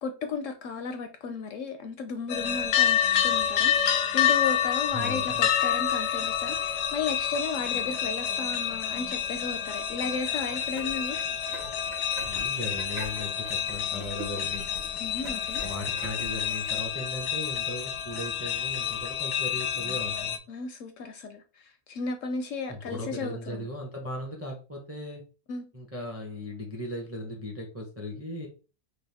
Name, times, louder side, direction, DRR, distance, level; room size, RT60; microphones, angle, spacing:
voice 1, 0.0-11.2 15.0-15.7 20.5-23.7 25.5-25.7, left 4 dB, 70° left, 0.8 m, -34 dB
sound 1, 2.3-20.4, left 9 dB, 85° left, 1.1 m, -28 dB
voice 2, 4.9-5.5 12.2-14.6 15.6-20.4 22.7-25.2 25.7-28.5, left 1 dB, 15° right, 0.6 m, -37 dB
sound 2, 10.3-16.8, right 2 dB, 50° right, 1.1 m, -44 dB
5.4 x 2.3 x 3.4 m
omnidirectional pair, 1.7 m